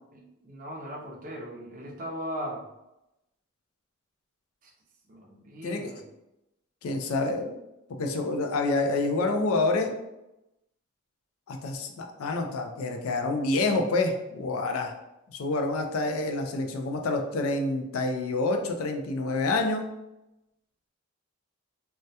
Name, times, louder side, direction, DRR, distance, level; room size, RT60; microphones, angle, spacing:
voice 1, 0.1-2.7 4.6-4.7 5.1-6.0, equal, 40° right, 0 dB, 0.4 m, -38 dB
voice 2, 6.8-7.6 7.9-9.9 11.5-14.9 15.3-19.9, left 2 dB, 80° left, 4 dB, 0.4 m, -27 dB
2.2 x 2.1 x 2.7 m, 0.93 s
head